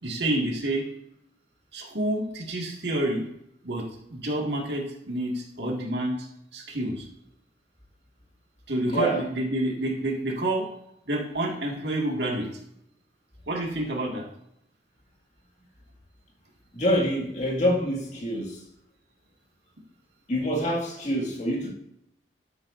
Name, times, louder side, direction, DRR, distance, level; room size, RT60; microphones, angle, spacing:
voice 1, 0.0-0.9 1.7-3.3 3.6-6.3 6.5-7.1 8.7-10.7 11.1-12.5 13.5-14.3, right 1 dB, 70° right, 2.0 m, -28 dB
voice 2, 8.9-9.2 16.7-18.6 20.3-21.7, equal, 40° left, 2.1 m, -26 dB
13.0 x 8.0 x 2.6 m
head